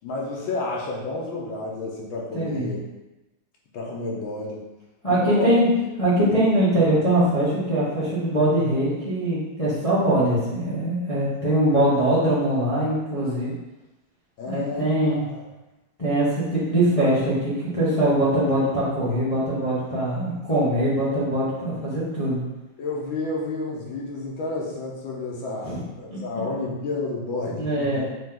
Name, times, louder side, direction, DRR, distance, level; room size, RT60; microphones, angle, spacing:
voice 1, 0.0-2.8 3.7-4.6 5.1-5.5 14.4-15.5 22.8-28.0, left 3 dB, 85° left, -3 dB, 1.8 m, -31 dB
voice 2, 2.3-2.7 5.0-5.7 6.0-13.5 14.5-15.2 16.0-22.4 25.6-25.8 26.1-26.2 27.6-28.1, right 1 dB, 25° left, -10 dB, 0.9 m, -22 dB
4.5 x 3.1 x 3.7 m, 1.0 s
omnidirectional pair, 2.1 m